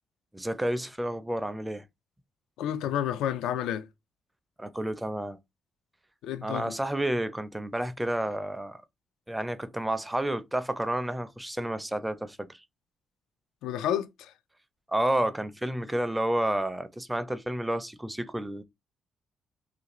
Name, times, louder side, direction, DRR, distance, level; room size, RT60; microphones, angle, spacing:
voice 1, 0.3-1.8 4.6-5.4 6.4-8.8 9.3-12.5 14.9-18.6, right 1 dB, 10° right, 0.4 m, -30 dB
voice 2, 2.6-3.9 6.2-6.8 13.6-14.3, left 10 dB, 85° left, 0.3 m, -30 dB
2.5 x 2.3 x 2.9 m
supercardioid pair, 70°, 0 cm